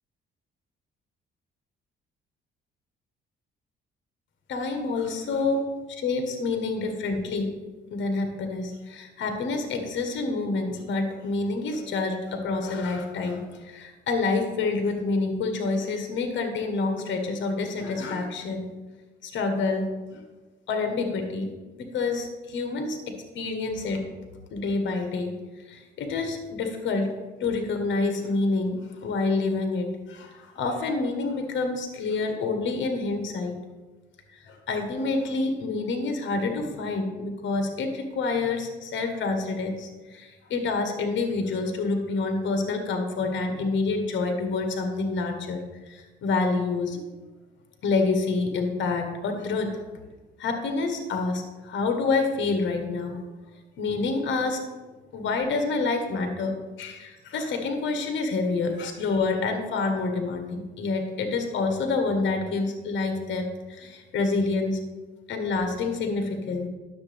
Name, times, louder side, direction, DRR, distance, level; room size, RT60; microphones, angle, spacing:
voice 1, 4.5-5.6 5.9-7.5 7.9-18.7 19.2-19.9 20.7-21.5 21.9-24.0 24.5-25.3 25.7-27.1 27.4-28.7 29.0-33.6 34.5-45.6 45.9-47.0 47.8-49.7 50.4-53.2 53.8-54.6 55.1-56.5 56.8-64.8 65.3-66.7, left 3 dB, 70° left, 5 dB, 1.4 m, -27 dB
9.7 x 7.0 x 3.5 m, 1.2 s
cardioid pair, 90°, 20 cm